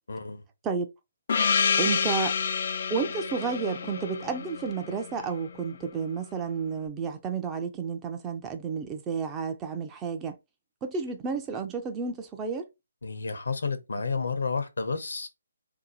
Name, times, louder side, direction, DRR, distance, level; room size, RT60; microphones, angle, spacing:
voice 1, 0.1-0.4 13.0-15.3, left 4 dB, 80° left, 0.8 m, -31 dB
Gong, 1.3-5.6, left 6 dB, 50° left, 0.3 m, -28 dB
voice 2, 1.8-2.3 2.9-10.3 10.8-12.6, right 5 dB, 15° right, 0.4 m, -31 dB
2.7 x 2.2 x 3.9 m
hypercardioid pair, 160°, 0 cm